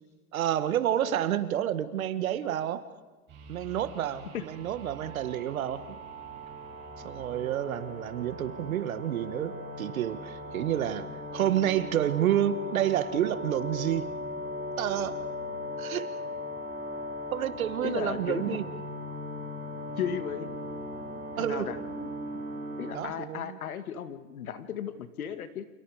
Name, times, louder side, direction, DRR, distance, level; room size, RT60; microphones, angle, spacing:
voice 1, 0.3-2.8 3.5-6.0 7.0-14.1 14.8-15.2 15.8-16.1 17.3-18.6 21.4-21.7 22.9-23.6, right 11 dB, 75° right, 11 dB, 2.0 m, -29 dB
sound 1, 3.3-22.9, left 1 dB, 25° right, 7.6 m, -39 dB
voice 2, 17.8-18.6 20.0-20.5 21.4-22.1 22.8-25.7, left 8 dB, 90° left, 10 dB, 2.2 m, -35 dB
29.5 x 28.0 x 5.1 m, 1.2 s
supercardioid pair, 155°, 42 cm